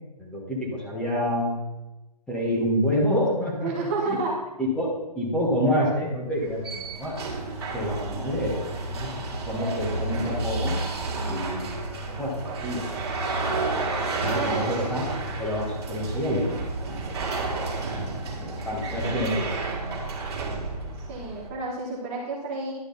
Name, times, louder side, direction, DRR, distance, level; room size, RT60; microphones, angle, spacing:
voice 1, 0.2-1.6 2.3-4.2 4.6-4.9 5.1-7.2 7.7-10.8 11.2-11.9 12.2-12.9 14.2-15.1 15.4-17.5 17.9-19.5 19.9-20.0, equal, 5° left, -5 dB, 1.2 m, -28 dB
voice 2, 3.6-4.3 14.3-14.6 21.1-22.7, right 3 dB, 20° right, -2 dB, 1.1 m, -30 dB
sound 1, 6.3-21.5, right 3 dB, 40° right, 2.3 m, -31 dB
10.5 x 6.4 x 4.0 m, 1.0 s
hypercardioid pair, 155°, 21 cm